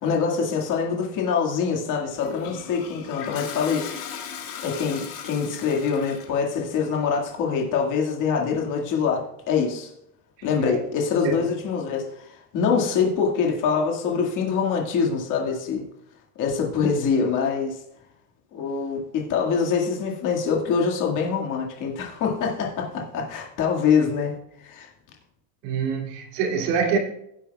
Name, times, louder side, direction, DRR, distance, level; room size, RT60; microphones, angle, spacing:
voice 1, 0.0-3.9 4.6-9.9 10.4-15.8 16.4-17.8 18.5-24.3 24.6-24.9, left 6 dB, 40° left, 2.0 m, -24 dB
Toilet flush, 2.2-6.4, left 8 dB, 75° left, 2.2 m, -37 dB
voice 2, 25.6-27.0, right 5 dB, 85° right, 2.7 m, -25 dB
16.0 x 8.3 x 2.3 m
cardioid pair, 160°, 48 cm